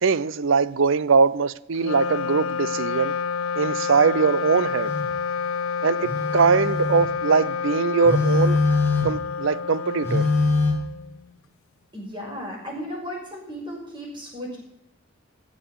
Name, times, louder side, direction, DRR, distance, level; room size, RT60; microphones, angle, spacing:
voice 1, 0.0-3.1 3.6-4.9 5.8-8.6 9.0-10.3, right 5 dB, 65° right, 0.6 m, -21 dB
Wind instrument woodwind instrument, 1.7-11.3, left 6 dB, 75° left, 0.5 m, -29 dB
Telephone, 4.9-5.1 6.0-7.1 8.0-9.3 10.0-10.7, left 3 dB, 10° left, 2.7 m, -23 dB
voice 2, 11.9-14.6, equal, 25° right, 6.3 m, -35 dB
15.5 x 7.6 x 8.0 m
head